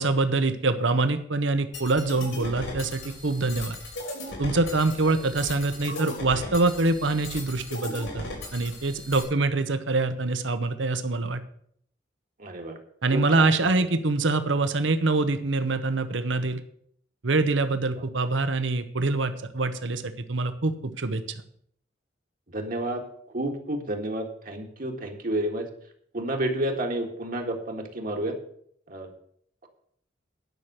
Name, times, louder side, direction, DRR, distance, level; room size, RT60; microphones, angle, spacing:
voice 1, 0.0-3.8 4.4-11.4 13.0-16.6 17.2-21.2, right 3 dB, 75° right, 10 dB, 0.9 m, -25 dB
sound 1, 1.7-9.2, left 2 dB, 75° left, 3.8 m, -38 dB
voice 2, 12.4-12.8 13.1-13.5 22.5-23.0 23.3-25.7 26.1-28.3 28.9-29.1, right 1 dB, 50° right, 3 dB, 1.8 m, -30 dB
11.0 x 6.0 x 8.0 m, 0.64 s
head